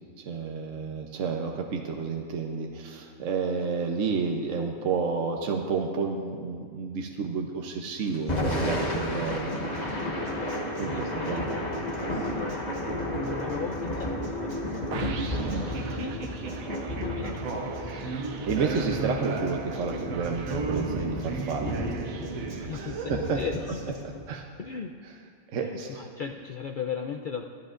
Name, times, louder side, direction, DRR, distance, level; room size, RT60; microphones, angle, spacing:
voice 1, 0.2-9.5 10.8-11.6 12.1-12.3 15.4-15.6 18.0-18.2 18.5-21.9 22.7-23.4 24.3-24.5 25.5-26.1, right 5 dB, 65° right, 2 dB, 1.1 m, -31 dB
Acoustic guitar, 8.0-24.0, right 2 dB, 50° right, 1.9 m, -50 dB
Thunder / Rain, 8.1-24.4, left 1 dB, 30° left, 1.4 m, -33 dB
voice 2, 10.4-11.6 12.1-12.6 13.2-16.3 17.0-17.6 22.6-24.0 24.6-24.9 25.6-27.4, left 6 dB, 65° left, 4 dB, 0.5 m, -37 dB
sound 1, 14.9-23.2, right 4 dB, 80° right, 1.3 m, -35 dB
23.5 x 11.5 x 2.5 m, 2.1 s
omnidirectional pair, 1.4 m